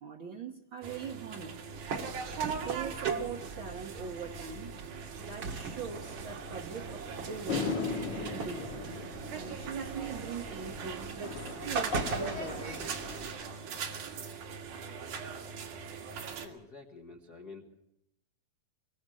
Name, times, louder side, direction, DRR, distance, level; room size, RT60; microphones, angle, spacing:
voice 1, 0.0-1.5 2.6-4.7 5.2-8.7 9.3-13.0, right 6 dB, 75° right, 0 dB, 1.1 m, -42 dB
sound 1, 0.8-16.5, right 6 dB, 90° right, 4.0 m, -41 dB
sound 2, 1.7-13.3, right 4 dB, 55° right, 1.3 m, -40 dB
sound 3, 7.5-14.0, left 5 dB, 55° left, 1.2 m, -39 dB
voice 2, 16.4-17.7, left 4 dB, 80° left, 4 dB, 0.8 m, -49 dB
23.5 x 19.5 x 6.4 m, 0.80 s
omnidirectional pair, 4.1 m